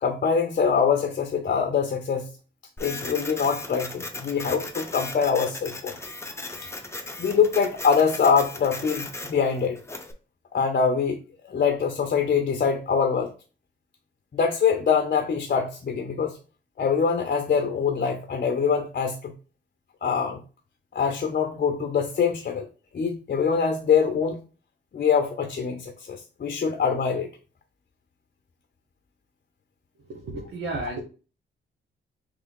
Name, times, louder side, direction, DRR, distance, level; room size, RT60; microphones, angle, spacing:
voice 1, 0.0-2.3 2.8-5.9 7.2-9.8 10.5-13.3 14.3-16.4 16.8-19.3 20.0-20.4 20.9-22.7 22.9-24.4 24.9-27.3, left 6 dB, 45° left, 6 dB, 0.7 m, -24 dB
Printer, 2.8-10.1, left 2 dB, 10° left, 0.8 m, -37 dB
voice 2, 30.0-31.0, right 2 dB, 80° right, -4 dB, 1.1 m, -33 dB
3.4 x 3.3 x 3.7 m, 0.35 s
cardioid pair, 75°, 21 cm